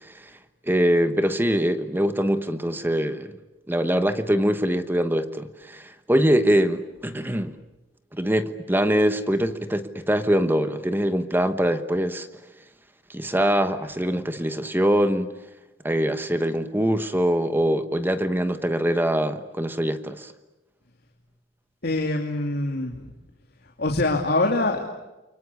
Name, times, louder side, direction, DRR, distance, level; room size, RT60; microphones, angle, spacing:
voice 1, 0.7-3.3 3.7-7.5 8.1-12.3 13.1-15.3 15.8-20.3, equal, 10° right, 1.1 m, -23 dB
voice 2, 21.8-23.1 23.8-24.9, left 2 dB, 60° left, 2.6 m, -24 dB
30.0 x 24.0 x 8.3 m
head